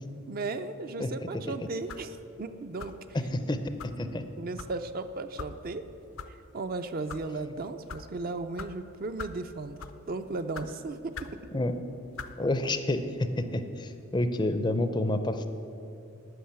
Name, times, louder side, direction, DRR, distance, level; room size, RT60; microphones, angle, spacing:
voice 1, 0.3-3.0 4.4-5.9 6.3-11.1, right 3 dB, 45° right, 9 dB, 0.4 m, -36 dB
sound 1, 1.9-2.1 2.8-3.1 3.8-4.0 4.6-4.7 5.4-5.5 6.2-6.3 6.9-7.2 7.9-8.0 8.6-8.7 9.2-9.4 9.8-10.0 10.5-10.7 11.1-11.4 12.1-12.3, left 5 dB, 70° left, 0.6 m, -41 dB
voice 2, 3.1-4.2 11.5-11.7 12.4-15.5, left 1 dB, 20° left, 9 dB, 0.5 m, -29 dB
11.5 x 6.2 x 8.7 m, 2.8 s
head